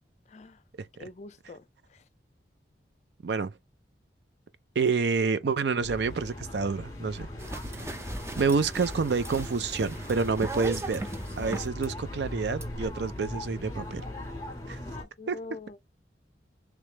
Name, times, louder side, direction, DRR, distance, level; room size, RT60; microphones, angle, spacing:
voice 1, 0.3-0.6 1.0-2.1 15.2-15.8, left 3 dB, 40° left, 0.4 m, -45 dB
voice 2, 0.8-1.1 3.2-3.5 4.8-7.3 8.4-11.0 11.4-14.0 14.7-14.8 15.3-15.4, right 4 dB, 70° right, 0.5 m, -28 dB
sound 1, 5.8-15.0, left 1 dB, 20° left, 1.5 m, -39 dB
sound 2, 7.4-11.9 12.6-12.7, right 2 dB, 15° right, 0.5 m, -38 dB
3.2 x 3.2 x 3.3 m
head